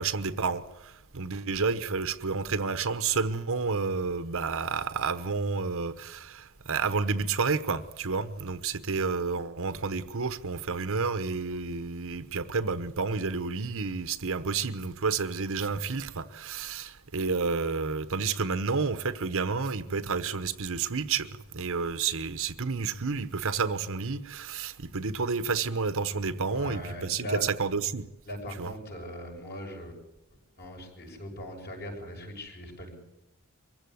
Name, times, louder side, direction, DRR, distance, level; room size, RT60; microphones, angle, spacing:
voice 1, 0.0-21.3 21.5-28.1 28.6-28.7, right 4 dB, 65° right, 1.1 m, -30 dB
voice 2, 26.4-27.4 28.2-30.0 30.6-33.0, left 1 dB, 45° left, 6.4 m, -40 dB
23.5 x 15.5 x 9.5 m
head